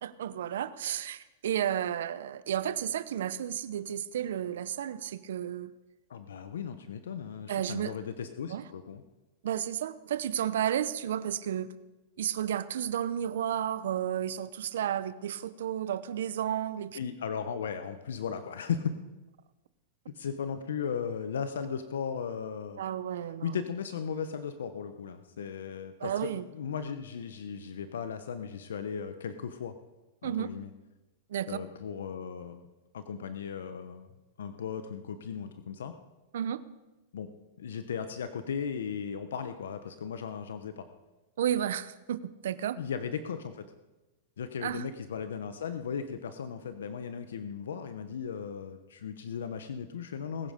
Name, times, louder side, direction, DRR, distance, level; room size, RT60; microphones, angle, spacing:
voice 1, 0.0-5.7 7.5-7.9 8.5-8.6 9.4-11.7 12.2-17.0 22.8-23.6 26.0-26.4 30.2-30.5 31.3-31.6 36.3-36.6 41.4-42.8 44.6-44.9, right 10 dB, 80° right, 15 dB, 0.8 m, -32 dB
voice 2, 6.1-9.0 16.9-18.9 20.1-22.8 23.4-29.8 30.2-30.7 31.5-32.6 32.9-34.1 34.4-35.9 37.1-37.3 37.6-40.9 42.7-43.6 44.4-50.5, left 7 dB, 85° left, 9 dB, 0.9 m, -36 dB
20.5 x 9.7 x 5.2 m, 1.1 s
hypercardioid pair, 125°, 0 cm